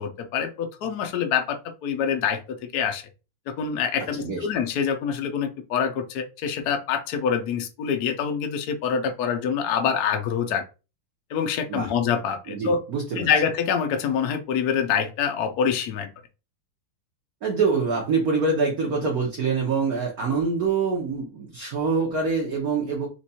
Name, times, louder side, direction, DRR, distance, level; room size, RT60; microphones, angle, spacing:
voice 1, 0.0-3.0 3.6-10.6 11.3-12.8 13.2-16.1, left 7 dB, 60° left, 6 dB, 1.1 m, -25 dB
voice 2, 12.5-13.3 17.4-23.1, right 4 dB, 55° right, -1 dB, 1.2 m, -25 dB
4.5 x 2.6 x 4.2 m, 0.31 s
omnidirectional pair, 2.3 m